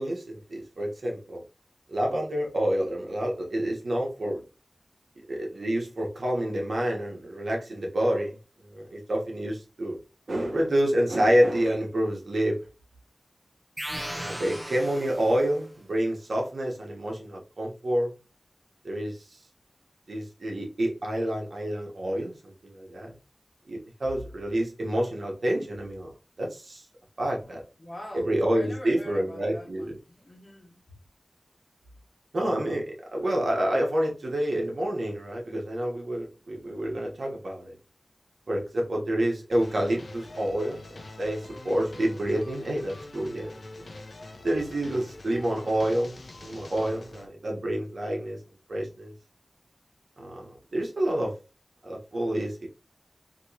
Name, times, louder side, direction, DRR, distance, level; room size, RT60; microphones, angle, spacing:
voice 1, 0.0-1.4 1.9-4.4 5.3-8.4 8.6-10.0 10.3-12.6 14.1-18.1 18.8-19.2 20.1-23.1 23.7-26.8 27.2-27.6 28.2-30.0 32.3-37.8 38.5-43.5 43.8-43.9 44.4-48.4 48.7-49.1 50.2-51.4 51.8-52.7, right 1 dB, 75° right, 1.0 m, -28 dB
sound 1, 13.8-15.7, equal, 15° right, 0.6 m, -37 dB
voice 2, 27.4-30.8, left 1 dB, 45° left, 1.6 m, -44 dB
sound 2, 39.5-47.3, left 2 dB, 75° left, 0.6 m, -44 dB
3.0 x 2.9 x 2.8 m
wide cardioid pair, 55°, 0 cm